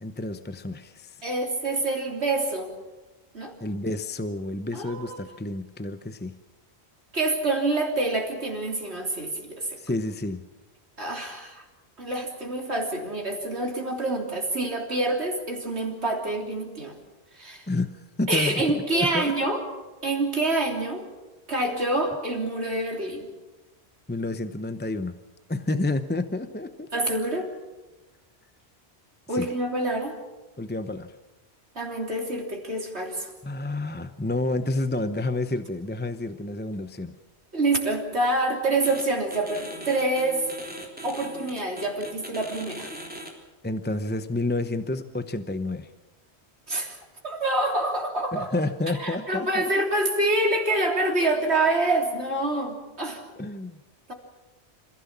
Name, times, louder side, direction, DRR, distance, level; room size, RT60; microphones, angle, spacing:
voice 1, 0.0-1.2 3.6-6.4 9.8-10.4 17.7-18.6 18.9-19.3 24.1-25.2 25.5-26.9 29.3-29.5 30.6-31.2 33.4-37.2 43.6-45.9 48.3-49.7 53.4-53.8, left 2 dB, 10° left, 9 dB, 0.7 m, -29 dB
voice 2, 1.2-2.7 3.3-3.5 4.7-5.2 7.1-9.8 11.0-11.6 12.0-17.0 17.3-17.7 18.3-19.6 20.0-21.1 21.5-23.3 26.9-27.5 29.3-30.2 31.8-33.3 37.5-40.5 41.0-42.9 46.7-47.0 47.2-48.5 49.0-53.2 54.1-54.2, right 2 dB, 75° right, 1 dB, 3.7 m, -26 dB
sound 1, 38.8-39.0 39.3-43.3, equal, 10° right, 3.4 m, -40 dB
27.0 x 16.0 x 7.3 m, 1.2 s
omnidirectional pair, 1.1 m